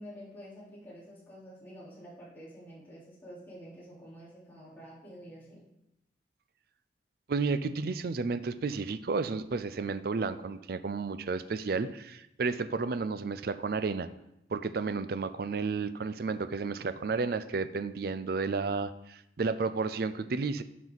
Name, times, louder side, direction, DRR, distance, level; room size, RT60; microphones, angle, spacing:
voice 1, 0.0-5.6, equal, 10° left, -10 dB, 3.9 m, -48 dB
voice 2, 7.3-14.1 14.5-20.6, right 4 dB, 55° right, 13 dB, 0.4 m, -32 dB
12.0 x 6.0 x 4.0 m, 0.84 s
head